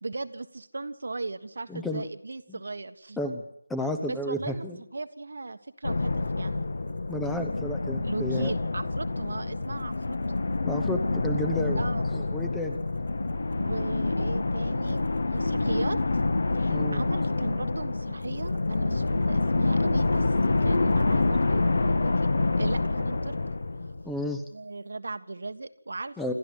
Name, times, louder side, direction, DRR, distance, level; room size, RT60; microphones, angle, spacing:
voice 1, 0.0-3.2 4.1-4.7 4.9-6.6 8.0-10.2 11.8-12.0 13.6-16.0 16.5-22.3 22.6-23.3 24.5-26.3, right 3 dB, 55° right, 10 dB, 1.5 m, -37 dB
voice 2, 1.7-2.0 2.5-2.6 3.2-3.4 3.7-4.8 7.1-8.5 10.6-11.9 12.1-12.8 16.7-17.0 24.0-24.4 26.2-26.3, left 1 dB, 5° left, 6 dB, 1.0 m, -32 dB
sound 1, 5.8-24.3, left 3 dB, 55° left, 1.7 m, -27 dB
27.5 x 12.5 x 8.2 m, 0.74 s
figure-of-eight pair, 165°, 0 cm